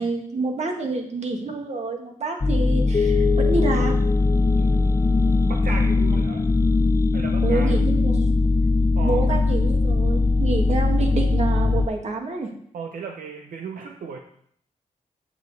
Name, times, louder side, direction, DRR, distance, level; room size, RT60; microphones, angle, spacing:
voice 1, 0.0-4.0 7.4-8.3 9.0-12.5, right 3 dB, 55° right, 2 dB, 1.7 m, -27 dB
sound 1, 2.4-11.9, left 3 dB, 20° left, 0.3 m, -20 dB
sound 2, 2.9-5.5, left 9 dB, 40° left, 0.9 m, -28 dB
voice 2, 4.6-5.1 5.4-6.5 7.1-7.8 9.0-9.3 12.7-14.2, right 5 dB, 80° right, 3 dB, 0.8 m, -35 dB
8.7 x 6.8 x 4.0 m, 0.65 s
cardioid pair, 80°, 14 cm